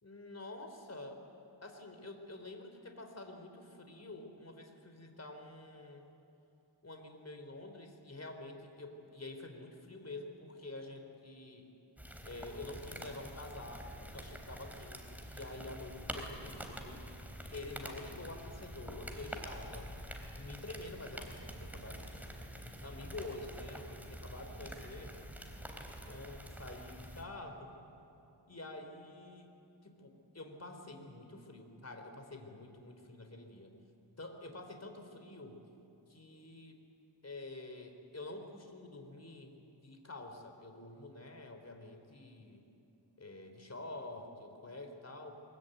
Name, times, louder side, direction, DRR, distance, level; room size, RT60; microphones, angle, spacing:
voice 1, 0.0-1.2 1.6-6.1 6.8-11.7 12.3-17.0 17.5-19.9 20.3-22.3 22.8-25.2 26.1-27.7 28.5-29.5 29.8-33.8 34.2-35.6 36.1-36.8 37.2-39.5 39.8-42.6 43.2-45.3, left 2 dB, 35° left, 5 dB, 3.7 m, -48 dB
sound 1, 12.0-27.2, equal, 5° right, 3.6 m, -47 dB
23.5 x 22.5 x 9.2 m, 2.9 s
wide cardioid pair, 80°, 45 cm